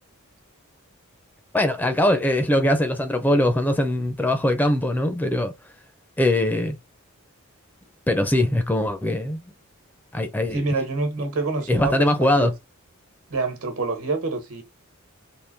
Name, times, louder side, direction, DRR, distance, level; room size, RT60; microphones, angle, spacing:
voice 1, 1.5-5.5 6.2-6.8 8.1-9.4 10.1-10.6 11.7-12.5, left 1 dB, 10° left, 0.4 m, -21 dB
voice 2, 10.5-12.5 13.3-14.6, right 3 dB, 75° right, 1.1 m, -27 dB
3.6 x 2.6 x 2.5 m
head